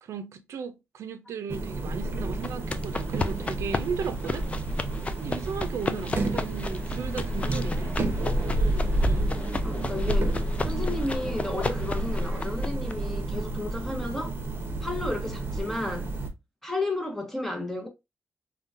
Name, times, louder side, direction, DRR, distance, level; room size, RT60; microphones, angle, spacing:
voice 1, 0.0-4.4 5.2-8.0, right 6 dB, 80° right, 0.4 m, -36 dB
sound 1, 1.5-16.3, right 1 dB, 50° right, 0.7 m, -29 dB
sound 2, 2.4-12.9, left 3 dB, 25° left, 0.3 m, -34 dB
voice 2, 5.9-6.4 9.6-10.3 10.6-14.4 14.8-16.1 16.6-17.9, left 2 dB, 5° left, 0.8 m, -33 dB
3.8 x 2.2 x 2.5 m
cardioid pair, 110°, 5 cm